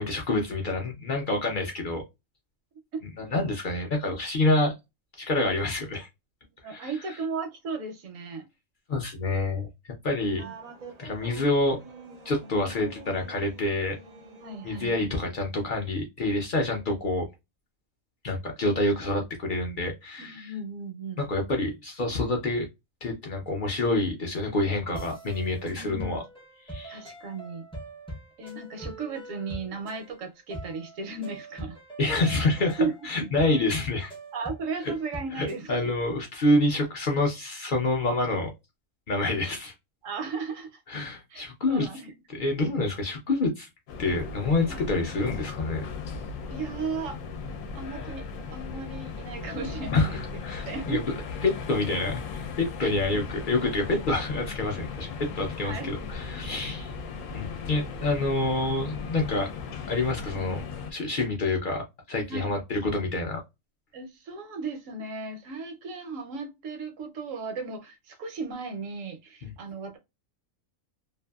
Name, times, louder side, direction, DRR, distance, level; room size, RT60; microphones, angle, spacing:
voice 1, 0.0-2.0 3.2-4.7 5.2-6.1 6.6-7.2 8.9-10.4 11.0-11.8 12.2-14.0 14.6-17.3 18.2-20.5 21.2-22.7 23.0-26.2 26.6-27.0 32.0-34.1 34.8-34.9 35.3-38.5 39.1-39.7 40.9-41.9 42.3-43.7 44.0-45.8 49.9-51.0 51.4-56.9 57.3-59.5 59.9-60.6 60.9-63.4 69.4-69.5, left 2 dB, 55° left, 0.6 m, -27 dB
voice 2, 6.6-8.5 10.2-10.5 14.4-15.1 20.2-21.2 25.7-26.3 26.9-27.7 28.4-31.8 32.8-32.9 33.4-33.5 34.3-35.8 40.0-40.8 41.3-42.1 44.7-44.8 46.5-47.2 47.7-48.2 48.5-50.2 50.6-51.0 52.8-52.9 55.6-55.9 56.6-56.7 62.3-62.5 63.9-70.0, right 4 dB, 75° right, 1.0 m, -35 dB
sound 1, 10.4-15.2, right 3 dB, 45° right, 0.5 m, -47 dB
sound 2, 24.9-35.6, right 1 dB, 10° left, 0.4 m, -43 dB
sound 3, 43.9-60.9, left 5 dB, 75° left, 1.0 m, -37 dB
2.6 x 2.5 x 2.3 m
omnidirectional pair, 1.4 m